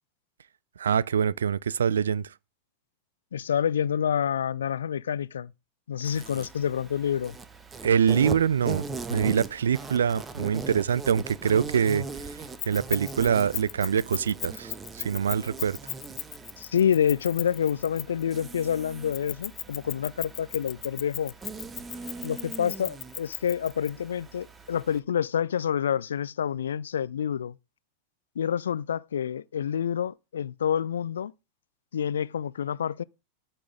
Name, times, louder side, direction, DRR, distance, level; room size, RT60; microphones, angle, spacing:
voice 1, 0.8-2.3 7.8-8.8 9.1-15.8, right 7 dB, 65° right, 0.5 m, -25 dB
voice 2, 3.3-5.5 5.9-7.4 16.6-21.3 22.2-27.6 28.4-31.3 31.9-33.0, left 8 dB, 65° left, 0.5 m, -28 dB
Insect, 6.0-25.0, right 4 dB, 15° right, 1.5 m, -40 dB
Keys jangling, 12.6-18.3 19.1-23.9, left 14 dB, 35° left, 0.8 m, -36 dB
13.5 x 6.0 x 5.0 m
figure-of-eight pair, 90°, 0 cm